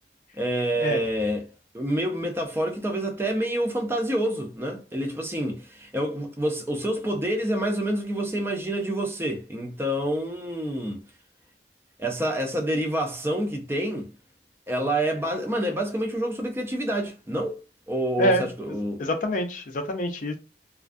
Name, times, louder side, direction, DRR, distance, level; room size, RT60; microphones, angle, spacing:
voice 1, 0.4-1.5 1.7-11.0 12.0-14.1 14.7-17.6 17.9-19.0, right 1 dB, 15° right, 0.4 m, -27 dB
voice 2, 19.0-20.4, equal, 45° left, 0.5 m, -25 dB
2.4 x 2.2 x 2.5 m
head